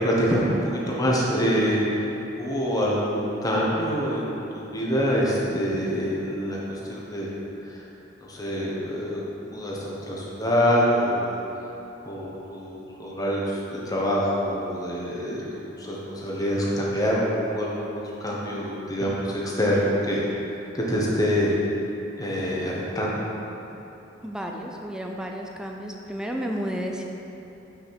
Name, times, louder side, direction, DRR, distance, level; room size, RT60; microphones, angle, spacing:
voice 1, 0.0-2.1 2.4-7.3 7.6-7.9 8.2-11.7 12.0-21.6 22.2-23.3, equal, 20° left, -5 dB, 1.2 m, -26 dB
voice 2, 24.2-27.0, equal, 5° right, 1 dB, 0.4 m, -32 dB
5.9 x 5.1 x 5.9 m, 3.0 s
head